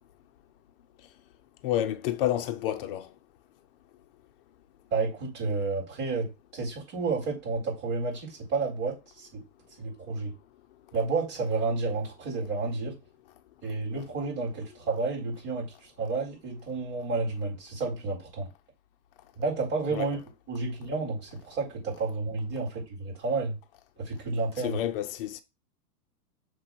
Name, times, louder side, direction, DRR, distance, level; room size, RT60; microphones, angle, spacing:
voice 1, 1.6-3.1 19.9-20.1 24.6-25.4, left 12 dB, 35° left, 0.8 m, -29 dB
voice 2, 4.9-9.4 9.8-10.3 10.9-13.0 13.6-15.7 16.0-18.5 19.4-20.2 20.5-23.6 24.0-24.8, right 3 dB, 35° right, 4.2 m, -31 dB
6.7 x 3.3 x 6.0 m
hypercardioid pair, 155°, 48 cm